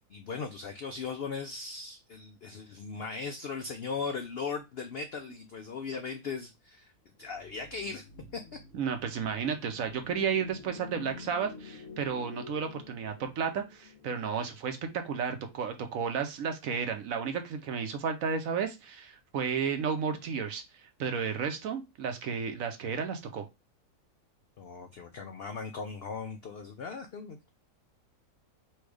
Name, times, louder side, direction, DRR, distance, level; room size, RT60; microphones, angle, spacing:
voice 1, 0.1-6.9 7.2-8.1 8.3-8.4 24.6-27.4, left 5 dB, 75° left, 6 dB, 0.5 m, -38 dB
sound 1, 7.2-15.5, left 5 dB, 55° left, 1.0 m, -49 dB
voice 2, 8.7-20.6 21.0-23.4, right 6 dB, 65° right, 6 dB, 1.1 m, -32 dB
4.4 x 2.3 x 4.8 m, 0.23 s
omnidirectional pair, 1.7 m